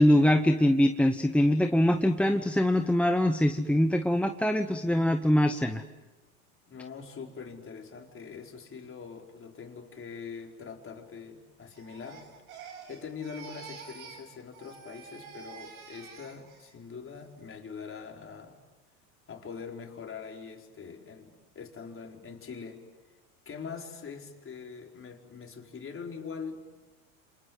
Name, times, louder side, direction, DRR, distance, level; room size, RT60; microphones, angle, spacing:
voice 1, 0.0-5.8, left 1 dB, 5° left, 9 dB, 1.1 m, -23 dB
voice 2, 6.7-12.2 12.9-18.6 19.3-22.8 23.4-26.6, left 5 dB, 30° left, 2 dB, 4.6 m, -43 dB
Crying sobbing, 11.7-14.3 14.5-16.7 17.1-17.5, right 6 dB, 80° right, 6.9 m, -48 dB
28.5 x 26.5 x 7.8 m, 1.2 s
hypercardioid pair, 90°, 43 cm